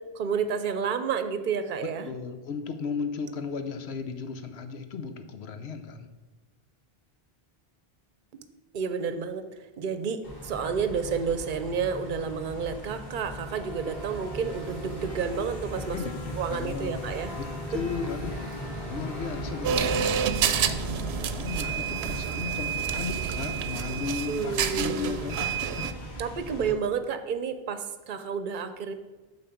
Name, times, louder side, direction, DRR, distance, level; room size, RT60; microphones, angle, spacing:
voice 1, 0.1-2.1 8.3-8.4 8.7-9.4 9.8-16.0 16.3-17.3 24.3-25.2 26.2-28.9, right 6 dB, 55° right, 10 dB, 0.8 m, -30 dB
voice 2, 1.8-6.1 15.9-17.0 17.4-18.6 18.9-26.2, left 5 dB, 90° left, 8 dB, 1.0 m, -36 dB
sound 1, 10.2-26.7, equal, 65° left, 2.3 m, -38 dB
sound 2, 19.6-25.9, right 8 dB, 85° right, 0.8 m, -29 dB
8.7 x 3.9 x 7.0 m, 1.3 s
omnidirectional pair, 1.0 m